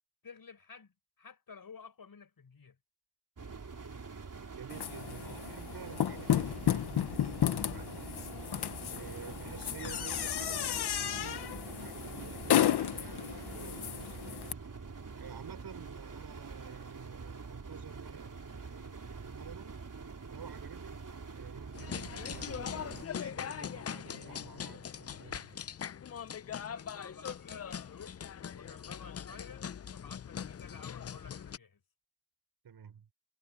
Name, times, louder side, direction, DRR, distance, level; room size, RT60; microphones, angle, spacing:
voice 1, 0.2-2.8 26.6-28.2 28.5-29.6 29.9-31.8, left 5 dB, 65° left, 5.5 m, -52 dB
sound 1, 3.4-23.1, right 4 dB, 55° right, 3.7 m, -45 dB
voice 2, 4.5-14.5 15.1-19.8 20.3-21.0 21.3-25.7 32.6-33.1, right 8 dB, 90° right, 5.4 m, -51 dB
sound 2, 4.7-14.5, left 11 dB, 85° left, 0.9 m, -33 dB
sound 3, 21.7-31.6, left 8 dB, 40° left, 0.5 m, -41 dB
cardioid pair, 50°, 38 cm